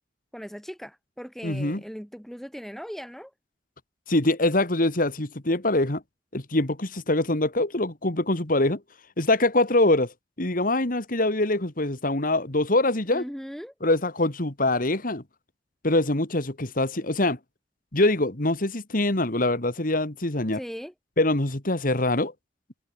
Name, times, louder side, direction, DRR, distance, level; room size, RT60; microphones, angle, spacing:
voice 1, 0.3-3.3 13.1-13.7 20.5-20.9, equal, ahead, 4.2 m, -38 dB
voice 2, 1.4-1.8 4.1-6.0 6.3-8.8 9.2-13.2 13.8-15.2 15.8-17.4 17.9-20.6 21.2-22.3, left 2 dB, 50° left, 2.4 m, -24 dB
head